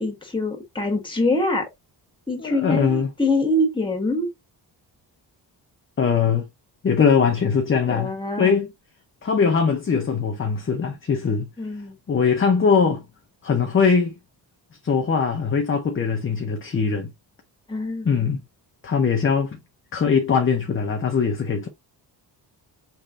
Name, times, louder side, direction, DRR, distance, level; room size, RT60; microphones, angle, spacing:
voice 1, 0.0-1.7 2.3-4.3 7.9-8.6 11.6-12.0 17.7-18.1, left 2 dB, 10° left, 1.6 m, -24 dB
voice 2, 2.4-3.1 6.0-6.5 6.8-8.1 8.4-8.7 9.2-11.5 12.1-13.0 13.4-14.1 14.8-17.1 18.0-18.4 18.8-19.6 19.9-21.7, left 6 dB, 30° left, 0.8 m, -21 dB
5.5 x 3.3 x 2.6 m
wide cardioid pair, 140°, 43 cm